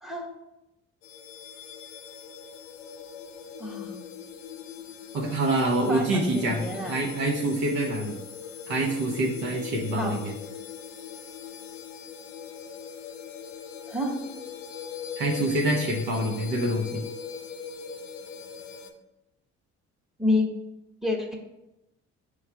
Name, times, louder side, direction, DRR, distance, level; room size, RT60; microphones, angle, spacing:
sound 1, 1.0-18.9, left 7 dB, 80° left, 0.6 m, -40 dB
voice 1, 3.6-4.0 5.9-7.0 10.0-10.2 13.9-14.2 20.2-20.5 21.0-21.4, left 2 dB, ahead, 1 dB, 0.9 m, -28 dB
voice 2, 5.1-8.2 8.7-10.3 15.2-17.0, right 1 dB, 70° right, -2 dB, 0.9 m, -26 dB
4.8 x 2.4 x 4.6 m, 0.93 s
hypercardioid pair, 55°, 37 cm